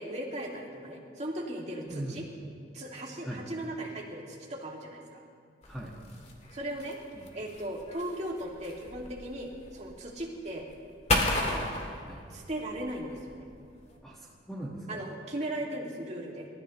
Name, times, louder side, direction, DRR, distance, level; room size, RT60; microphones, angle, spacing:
voice 1, 0.0-2.2 2.7-5.2 6.5-7.0 7.3-10.7 11.4-11.7 12.3-13.5 14.9-16.5, right 1 dB, 40° right, -2 dB, 2.3 m, -37 dB
voice 2, 1.9-2.3 3.2-3.4 5.7-6.0 7.2-7.3 12.0-12.2 14.0-15.1, right 1 dB, 5° left, -6 dB, 1.7 m, -40 dB
sound 1, 5.6-14.0, left 1 dB, 40° left, 1.9 m, -35 dB
27.5 x 14.0 x 3.2 m, 2.3 s
head